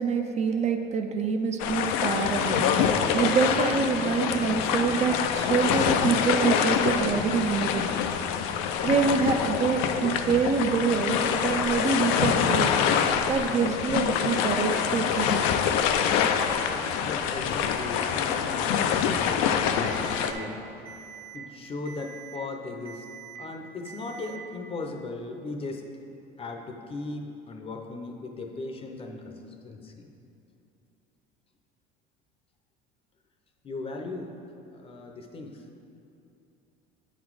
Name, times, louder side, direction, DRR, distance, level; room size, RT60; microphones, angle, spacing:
voice 1, 0.0-2.7 3.1-7.8 8.8-12.7 13.3-15.4, right 5 dB, 35° right, 5 dB, 0.5 m, -26 dB
sound 1, 1.6-20.3, left 7 dB, 75° left, 0.5 m, -25 dB
voice 2, 17.1-20.6 21.3-23.0 23.4-25.9 26.4-30.1 33.6-34.4 34.7-35.6, left 3 dB, 30° left, 3 dB, 0.7 m, -37 dB
Alarm, 19.9-20.4 20.9-21.4 21.9-22.4 22.9-23.4 23.9-24.4, right 9 dB, 80° right, 1.5 m, -45 dB
8.2 x 4.1 x 4.7 m, 2.7 s
supercardioid pair, 110°, 20 cm